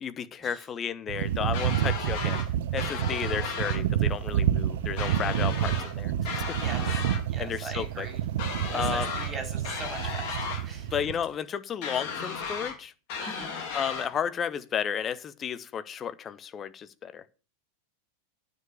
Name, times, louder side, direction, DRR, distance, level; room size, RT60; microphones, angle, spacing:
voice 1, 0.0-2.4 2.7-6.4 7.4-8.1 8.7-9.1 10.9-12.9 13.7-17.2, left 8 dB, 25° left, 0.8 m, -33 dB
sound 1, 1.1-11.3, right 11 dB, 55° right, 0.7 m, -29 dB
sound 2, 1.5-2.5 2.8-3.8 5.0-5.9 6.2-7.2 8.4-9.3 9.6-10.6 11.8-12.8 13.1-14.1, left 5 dB, 45° left, 3.1 m, -35 dB
voice 2, 6.6-7.0 7.3-8.2 8.7-10.9 13.2-13.5, right 3 dB, 20° right, 3.9 m, -40 dB
9.3 x 5.5 x 8.2 m
figure-of-eight pair, 90°, 0 cm